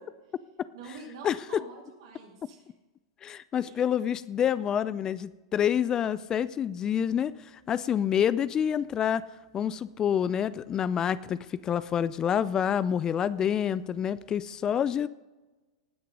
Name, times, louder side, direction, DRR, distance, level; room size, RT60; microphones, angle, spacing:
voice 1, 0.7-2.6 3.6-3.8, right 4 dB, 65° right, -2 dB, 2.5 m, -46 dB
voice 2, 1.2-1.6 3.2-7.3 7.7-9.2 9.5-15.1, left 9 dB, 25° left, 17 dB, 0.4 m, -27 dB
19.0 x 6.6 x 5.3 m, 1.2 s
hypercardioid pair, 95°, 2 cm